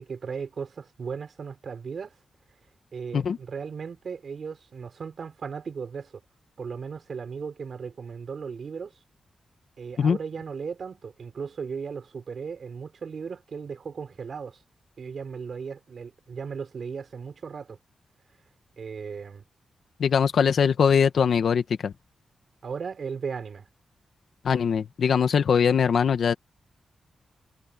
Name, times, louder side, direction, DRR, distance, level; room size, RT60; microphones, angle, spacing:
voice 1, 0.0-2.1 2.9-6.1 6.6-8.9 9.8-14.6 15.0-17.8 18.8-19.4 22.6-23.7, right 6 dB, 50° right, 4.5 m, -36 dB
voice 2, 20.0-21.9 24.4-26.3, left 7 dB, 60° left, 1.5 m, -22 dB
wide cardioid pair, 160°, 0 cm